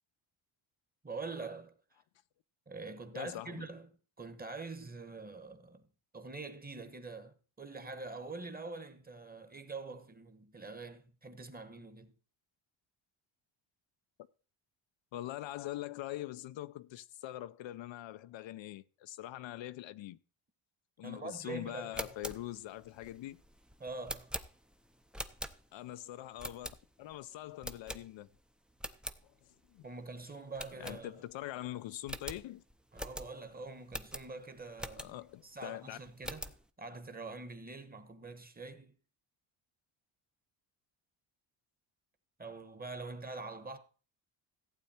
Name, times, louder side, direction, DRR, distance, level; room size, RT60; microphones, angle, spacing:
voice 1, 1.0-1.7 2.7-3.9 4.2-5.8 6.1-12.1 21.0-22.1 23.8-24.3 29.8-31.2 32.9-35.1 35.4-38.9 42.4-43.8, right 3 dB, 20° right, 1.3 m, -45 dB
voice 2, 3.1-3.7 15.1-20.2 21.0-23.4 25.7-28.3 29.2-29.9 30.8-32.6 35.0-36.0, left 14 dB, 65° left, 0.6 m, -43 dB
sound 1, 21.8-25.9 26.4-27.1 27.6-28.4 28.7-29.2 29.6-29.7 30.0-30.1 30.5-31.5 31.7-31.8 32.0-35.4 35.8-36.6, equal, ahead, 0.6 m, -44 dB
15.0 x 8.3 x 4.3 m
cardioid pair, 120°, 49 cm